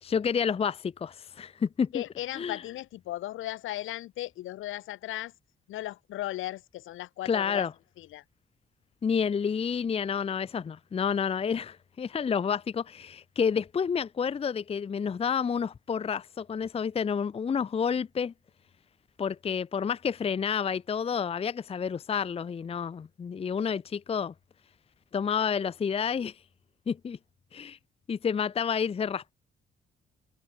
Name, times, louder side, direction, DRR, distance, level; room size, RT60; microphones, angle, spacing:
voice 1, 0.0-2.0 2.4-2.6 7.3-7.7 9.0-18.3 19.2-24.3 25.1-26.4 26.9-27.2 27.5-27.8 28.1-29.3, left 6 dB, 30° left, 0.6 m, -29 dB
voice 2, 1.9-5.3 5.7-7.7 8.0-8.2, left 15 dB, 85° left, 3.9 m, -36 dB
cardioid pair, 90°, 20 cm